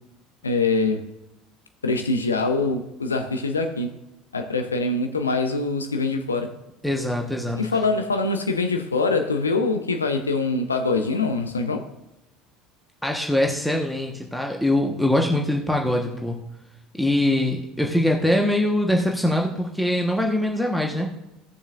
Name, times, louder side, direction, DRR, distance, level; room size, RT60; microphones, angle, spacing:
voice 1, 0.4-1.0 1.8-4.0 4.3-6.5 7.5-11.9, left 3 dB, 80° left, 0.7 m, -24 dB
voice 2, 6.8-7.6 13.0-16.4 17.0-21.1, left 1 dB, ahead, 1.3 m, -23 dB
17.0 x 6.9 x 2.5 m
figure-of-eight pair, 65°, 0 cm